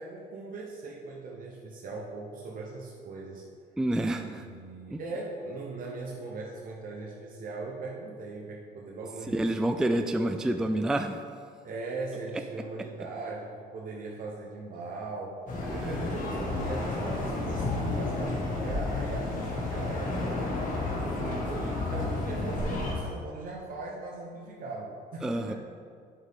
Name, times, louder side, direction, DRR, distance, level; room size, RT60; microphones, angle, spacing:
voice 1, 0.0-3.5 4.2-9.5 9.8-10.7 11.6-15.4 15.7-20.4 21.1-25.5, right 3 dB, 55° right, -2 dB, 1.1 m, -40 dB
voice 2, 3.8-4.5 4.9-5.0 9.3-11.2 15.7-16.1 25.2-25.5, right 1 dB, 5° right, 7 dB, 0.3 m, -28 dB
sound 1, 15.5-22.9, left 2 dB, 50° left, 1.9 m, -31 dB
8.1 x 7.7 x 3.7 m, 2.2 s
cardioid pair, 110°, 17 cm